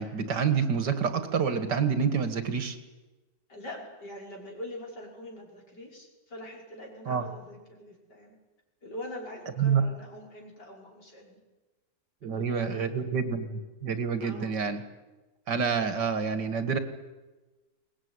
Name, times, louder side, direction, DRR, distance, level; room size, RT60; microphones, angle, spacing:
voice 1, 0.0-2.8 7.1-7.2 9.6-9.8 12.2-14.8 15.5-16.8, right 6 dB, 85° right, 9 dB, 2.5 m, -28 dB
voice 2, 3.5-8.4 8.8-11.4 12.3-13.1 14.2-14.6, left 1 dB, 80° left, -1 dB, 6.2 m, -43 dB
23.0 x 19.5 x 9.8 m, 1.2 s
omnidirectional pair, 1.8 m